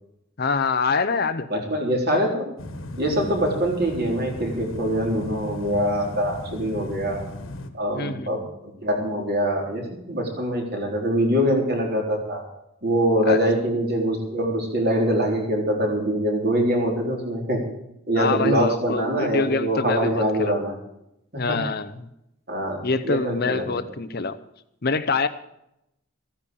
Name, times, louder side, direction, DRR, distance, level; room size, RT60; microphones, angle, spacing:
voice 1, 0.4-1.5 7.9-8.3 13.3-13.4 18.2-20.6 21.4-22.1 22.8-24.4 24.8-25.3, left 4 dB, 45° left, 11 dB, 0.7 m, -25 dB
voice 2, 1.5-2.5 3.0-7.2 7.7-8.4 8.8-12.4 12.8-17.6 18.1-20.7 21.5-21.6 22.5-23.8, equal, 45° right, 1 dB, 3.8 m, -24 dB
sound 1, 2.6-7.7, left 1 dB, 60° left, 1.5 m, -36 dB
14.5 x 10.0 x 7.0 m, 0.82 s
head